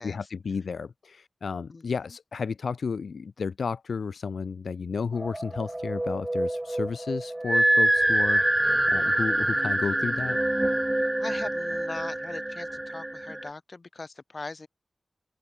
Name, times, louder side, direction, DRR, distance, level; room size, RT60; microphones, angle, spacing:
voice 1, 0.0-8.4 8.9-10.4, left 5 dB, 85° left, 1.3 m, -32 dB
voice 2, 1.7-2.2 11.2-14.7, left 3 dB, 40° left, 5.1 m, -40 dB
sound 1, 5.2-13.5, right 1 dB, 15° right, 1.2 m, -26 dB
wide cardioid pair, 110°, 0 cm